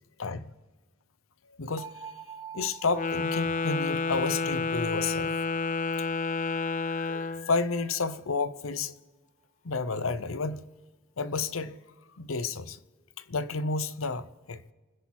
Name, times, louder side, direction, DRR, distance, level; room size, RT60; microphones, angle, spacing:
voice 1, 0.2-0.5 1.5-2.1 2.5-5.4 6.0-6.1 6.5-9.0 9.6-10.7 11.2-11.8 12.1-12.8 13.2-14.6, left 4 dB, 75° left, 0.8 m, -31 dB
sound 1, 1.8-7.6, right 7 dB, 20° right, 0.7 m, -47 dB
Wind instrument woodwind instrument, 2.9-7.5, left 4 dB, 35° left, 0.4 m, -30 dB
28.5 x 10.5 x 4.4 m
head